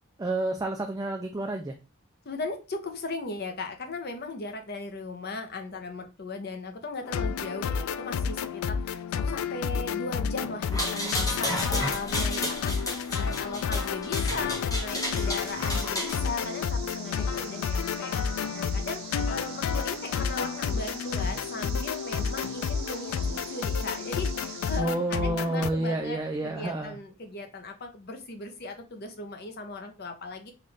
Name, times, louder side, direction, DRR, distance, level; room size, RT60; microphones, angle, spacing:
voice 1, 0.2-1.8 24.8-27.0, right 2 dB, 15° right, 3 dB, 0.3 m, -29 dB
voice 2, 2.2-12.7 13.2-18.1 18.5-30.5, left 3 dB, 50° left, 5 dB, 0.7 m, -37 dB
sound 1, 7.0-25.7, left 6 dB, 80° left, 0.3 m, -30 dB
sound 2, 10.6-16.2, left 1 dB, 15° left, 0.9 m, -32 dB
sound 3, 14.9-24.8, right 6 dB, 90° right, 1.1 m, -44 dB
3.8 x 2.5 x 3.2 m, 0.30 s
head